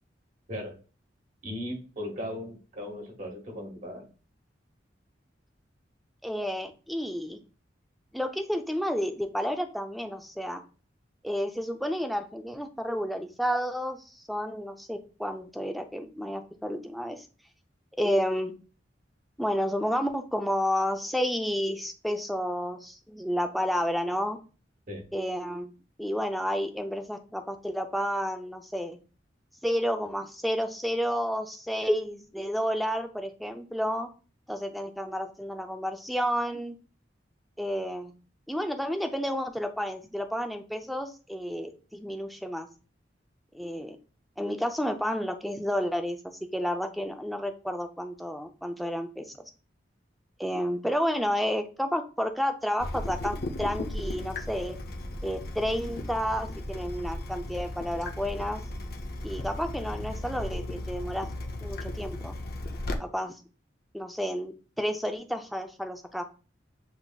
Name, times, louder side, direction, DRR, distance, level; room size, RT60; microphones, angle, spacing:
voice 1, 1.4-4.1 24.9-25.0, left 1 dB, 45° right, 1 dB, 1.4 m, -37 dB
voice 2, 6.2-7.4 8.1-10.6 11.2-17.3 18.0-18.5 19.4-24.4 25.1-25.7 26.0-29.0 29.6-34.1 34.5-36.7 37.6-38.1 38.5-42.7 43.5-44.0 44.4-49.5 50.4-54.8 55.2-58.6 59.2-61.3 61.6-62.3 63.0-63.4 63.9-66.2, equal, ahead, 5 dB, 0.4 m, -31 dB
Water tap faucet / Drip, 52.8-63.0, left 1 dB, 55° left, 0.6 m, -36 dB
7.8 x 2.9 x 2.2 m, 0.35 s
head